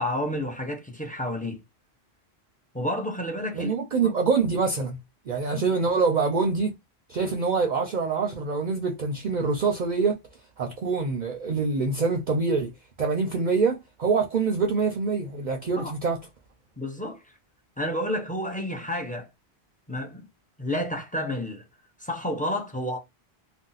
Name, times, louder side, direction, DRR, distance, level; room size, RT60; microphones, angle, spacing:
voice 1, 0.0-1.6 2.7-3.8 4.0-4.1 5.5-5.6 15.8-15.9 16.8-17.2 17.8-19.3 19.9-20.3 20.6-21.6 22.0-23.0, left 1 dB, 10° left, 0.5 m, -30 dB
voice 2, 3.5-5.0 5.3-6.7 7.1-10.2 10.6-12.7 13.0-16.2, right 4 dB, 55° right, 0.6 m, -25 dB
2.6 x 2.0 x 3.8 m
omnidirectional pair, 1.1 m